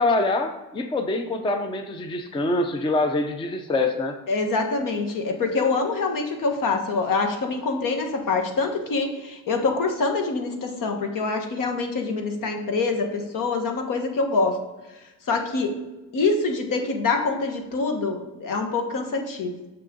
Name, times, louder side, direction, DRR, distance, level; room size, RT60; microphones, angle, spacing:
voice 1, 0.0-4.2, left 2 dB, 15° left, 7 dB, 0.4 m, -25 dB
voice 2, 4.3-14.6 15.3-15.8 16.1-19.5, left 3 dB, 65° left, 4 dB, 1.3 m, -25 dB
6.8 x 6.3 x 3.8 m, 1.1 s
cardioid pair, 145°, 35 cm